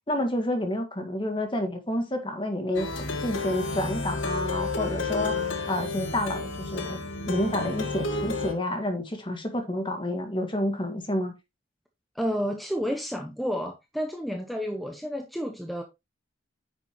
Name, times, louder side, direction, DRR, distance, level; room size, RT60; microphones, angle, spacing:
voice 1, 0.1-2.9 3.2-7.0 7.3-11.3, left 1 dB, 25° left, 1.8 m, -29 dB
Plucked string instrument, 2.7-8.5, left 3 dB, 85° left, 1.7 m, -31 dB
voice 2, 12.1-15.8, equal, ahead, 0.9 m, -30 dB
9.4 x 6.9 x 3.0 m
head